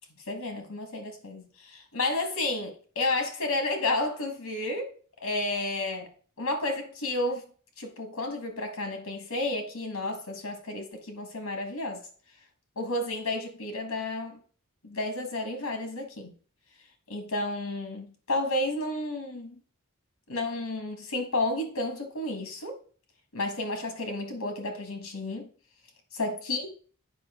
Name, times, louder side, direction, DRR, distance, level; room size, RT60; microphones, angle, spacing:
voice 1, 0.3-4.9 5.2-6.1 6.4-7.5 7.8-12.1 12.7-14.4 14.8-16.3 17.1-19.6 20.3-22.8 23.3-25.5 26.1-26.7, left 2 dB, 65° left, 1.7 m, -31 dB
9.1 x 5.0 x 3.7 m
head